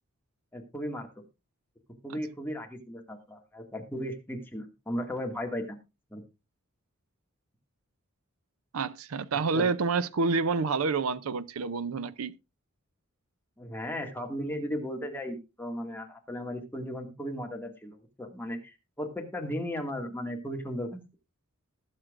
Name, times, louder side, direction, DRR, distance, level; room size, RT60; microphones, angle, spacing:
voice 1, 0.5-1.2 2.0-5.8 6.1-6.2 9.5-9.7 13.6-21.0, equal, 10° left, 2.0 m, -36 dB
voice 2, 8.7-12.3, right 4 dB, 80° right, 0.5 m, -28 dB
20.5 x 7.4 x 2.5 m
head